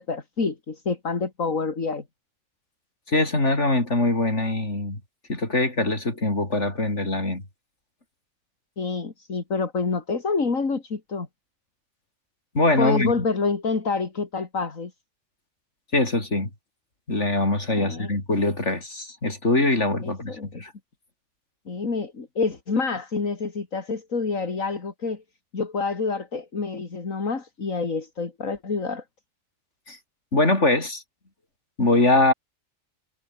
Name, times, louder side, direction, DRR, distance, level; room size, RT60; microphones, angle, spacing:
voice 1, 0.0-2.0 8.8-11.3 12.8-14.9 17.7-18.1 20.0-20.6 21.7-25.2 25.5-29.0, left 4 dB, 75° left, 3.1 m, -27 dB
voice 2, 3.1-5.0 5.3-7.4 12.5-13.1 15.9-16.5 17.1-20.7 29.9-30.0 30.3-31.0 31.8-32.3, left 2 dB, 60° left, 5.7 m, -22 dB
omnidirectional pair, 1.4 m